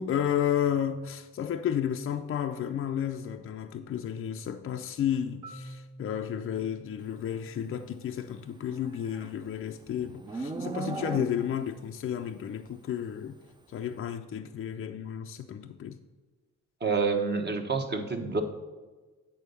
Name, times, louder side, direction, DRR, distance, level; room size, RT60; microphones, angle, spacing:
voice 1, 0.0-13.4 13.7-16.0, left 9 dB, 45° left, 0.5 m, -32 dB
Marimba xylophone, 5.4-9.3, right 1 dB, 80° right, 1.9 m, -50 dB
Livestock farm animals working animals, 8.5-11.7, right 4 dB, 15° right, 0.5 m, -38 dB
voice 2, 16.8-18.4, right 4 dB, 35° right, 1.1 m, -28 dB
8.4 x 4.0 x 6.8 m
cardioid pair, 90°, 30 cm